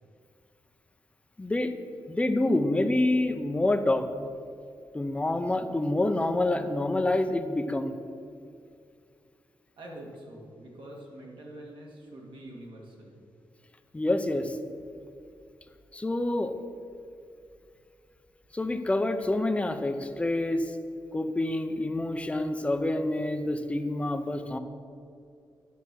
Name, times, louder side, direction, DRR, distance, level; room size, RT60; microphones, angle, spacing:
voice 1, 1.4-1.7 2.1-4.1 4.9-7.9 13.9-14.6 15.9-16.5 18.5-20.7 21.1-24.6, left 2 dB, 15° left, 8 dB, 0.6 m, -27 dB
voice 2, 9.8-13.2, right 1 dB, 70° right, -2 dB, 2.3 m, -45 dB
11.0 x 7.0 x 6.2 m, 2.4 s
wide cardioid pair, 155°, 9 cm